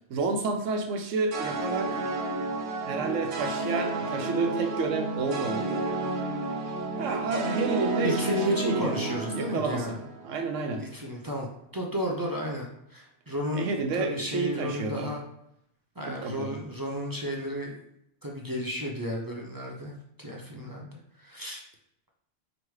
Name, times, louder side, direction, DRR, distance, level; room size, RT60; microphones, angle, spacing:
voice 1, 0.1-2.0 2.9-5.8 7.0-8.9 9.3-10.0 10.2-10.8 13.5-15.1 16.1-16.6, right 4 dB, 85° right, 4 dB, 1.1 m, -30 dB
sound 1, 1.3-10.6, right 2 dB, 60° right, 0.8 m, -31 dB
voice 2, 8.0-10.0 10.8-11.5 11.7-13.7 13.9-15.2 16.0-17.8 18.2-19.9 20.2-20.9 21.2-21.6, equal, 35° right, -1 dB, 0.3 m, -33 dB
5.0 x 3.0 x 3.1 m, 0.76 s
omnidirectional pair, 1.3 m